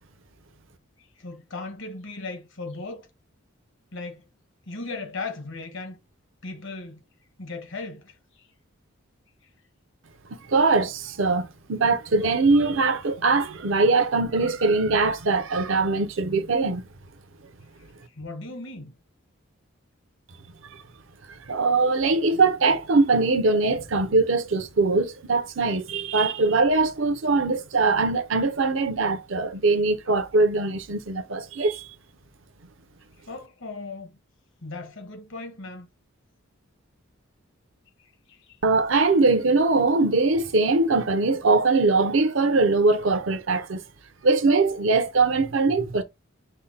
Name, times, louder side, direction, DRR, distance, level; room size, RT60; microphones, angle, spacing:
voice 1, 1.0-3.1 3.9-4.2 4.7-6.0 6.4-7.0 7.4-8.2 18.1-18.9 33.3-34.1 34.6-35.9 38.0-38.6, left 3 dB, 60° left, 1.2 m, -37 dB
voice 2, 10.5-16.8 20.7-20.8 21.3-31.9 38.6-43.8 44.2-46.0, right 3 dB, 65° right, 0.7 m, -22 dB
5.4 x 2.2 x 3.9 m
head